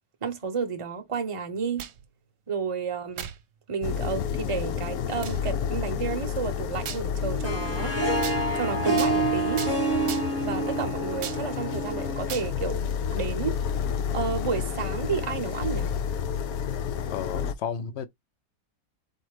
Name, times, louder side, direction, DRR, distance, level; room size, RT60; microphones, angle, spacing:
voice 1, 0.2-1.9 2.5-3.3 3.7-8.2 8.5-9.7 10.4-13.6 14.1-15.9, right 5 dB, 30° right, 0.7 m, -31 dB
sound 1, 1.6-2.1 3.2-3.4 4.1-4.2 5.2-5.4 6.9-7.1 8.2-8.4 9.0-9.2 9.6-9.7 10.1-10.4 11.2-11.4 12.3-12.5, right 9 dB, 75° right, 1.1 m, -36 dB
sound 2, 3.8-17.5, left 8 dB, 85° left, 1.1 m, -30 dB
Harp, 7.2-12.4, right 2 dB, 10° left, 0.9 m, -28 dB
voice 2, 17.1-18.1, left 7 dB, 60° left, 0.8 m, -33 dB
4.0 x 2.8 x 4.8 m
omnidirectional pair, 1.5 m